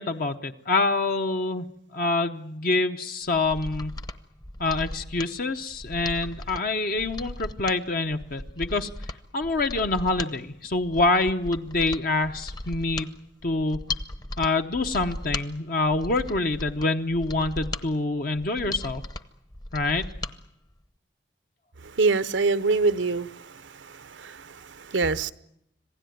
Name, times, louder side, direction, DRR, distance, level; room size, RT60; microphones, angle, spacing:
voice 1, 0.0-1.7 1.9-4.0 4.6-8.9 9.3-13.1 13.4-13.8 14.4-19.0 19.7-20.0, left 3 dB, 50° left, 5 dB, 0.8 m, -26 dB
Mechanisms, 3.4-20.4 20.7-20.8, left 2 dB, 20° left, 0.9 m, -37 dB
voice 2, 22.0-23.5 23.9-25.3, right 3 dB, 80° right, 14 dB, 0.8 m, -25 dB
26.5 x 17.0 x 9.3 m, 0.78 s
head